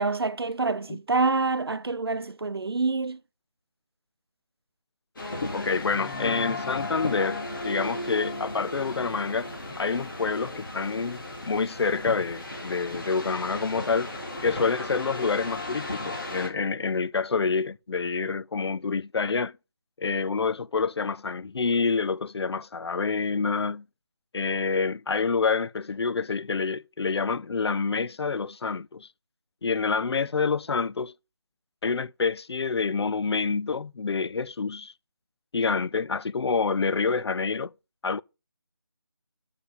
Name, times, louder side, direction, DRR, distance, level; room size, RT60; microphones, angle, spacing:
voice 1, 0.0-3.2, right 3 dB, 70° right, 0.8 m, -26 dB
sound 1, 5.2-16.5, left 2 dB, 55° left, 3.1 m, -35 dB
voice 2, 5.5-9.5 9.8-14.1 14.4-19.5 20.0-23.8 24.3-29.1 29.6-31.1 31.8-34.9 35.5-37.7 38.0-38.2, left 4 dB, 85° left, 0.4 m, -27 dB
6.8 x 4.8 x 5.2 m
figure-of-eight pair, 170°, 13 cm